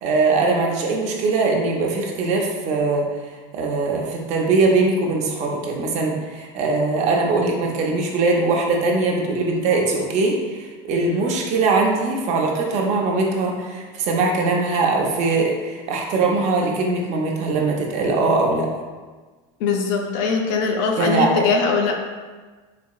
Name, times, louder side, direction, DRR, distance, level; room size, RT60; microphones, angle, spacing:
voice 1, 0.0-3.1 3.5-18.7 21.0-21.5, right 3 dB, 45° right, 0 dB, 0.6 m, -21 dB
voice 2, 19.6-21.9, left 5 dB, 70° left, 2 dB, 0.5 m, -21 dB
4.1 x 2.8 x 2.3 m, 1.3 s
supercardioid pair, 150°, 16 cm